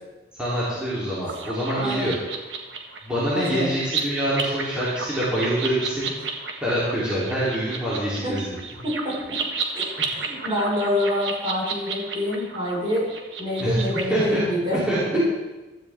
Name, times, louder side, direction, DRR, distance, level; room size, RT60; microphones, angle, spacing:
voice 1, 0.4-2.1 3.0-6.1 6.6-8.5 13.6-14.4 14.7-15.0, right 1 dB, 5° right, -10 dB, 3.3 m, -25 dB
sound 1, 1.3-14.0, right 5 dB, 80° right, 1.6 m, -32 dB
voice 2, 1.8-2.1 3.3-3.7 8.2-8.3 8.8-9.2 9.7-13.1 13.4-14.8, left 1 dB, 30° right, -5 dB, 5.1 m, -26 dB
15.5 x 13.0 x 3.6 m, 1.1 s
head